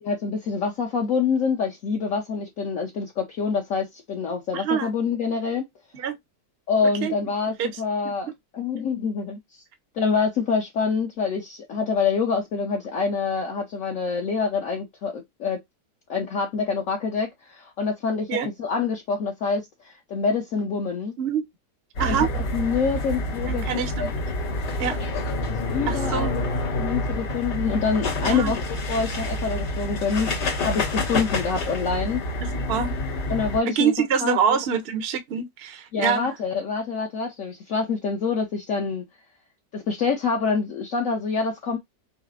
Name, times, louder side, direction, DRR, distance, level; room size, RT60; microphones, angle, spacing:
voice 1, 0.0-5.6 6.7-8.3 8.5-9.4 9.9-15.6 16.1-21.1 22.0-23.7 24.0-24.1 25.4-28.6 28.9-32.2 33.3-33.9 34.2-34.4 35.9-39.0 39.7-41.8, left 5 dB, 55° left, 1.1 m, -26 dB
voice 2, 4.5-4.9 5.9-6.1 7.0-7.1 7.6-7.7 18.3-18.5 21.2-21.4 22.0-22.3 23.5-24.1 24.8-25.0 25.9-26.3 28.2-28.6 32.4-33.0 33.6-36.3, right 7 dB, 50° right, 0.7 m, -25 dB
sound 1, 22.0-33.6, left 1 dB, 75° left, 2.1 m, -28 dB
5.7 x 2.0 x 2.3 m
omnidirectional pair, 1.8 m